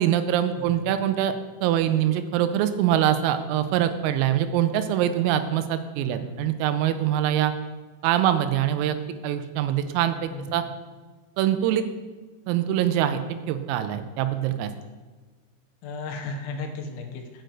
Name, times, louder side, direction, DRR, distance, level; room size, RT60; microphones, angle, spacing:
voice 1, 0.0-1.3 1.6-7.5 8.0-9.0 9.2-10.6 11.4-11.8 12.5-13.2 13.5-14.7, right 11 dB, 85° right, 10 dB, 3.3 m, -24 dB
voice 2, 6.1-6.4 10.3-10.5 15.8-17.4, left 3 dB, 80° left, 4 dB, 3.8 m, -35 dB
8.7 x 6.5 x 7.9 m, 1.4 s
omnidirectional pair, 6.0 m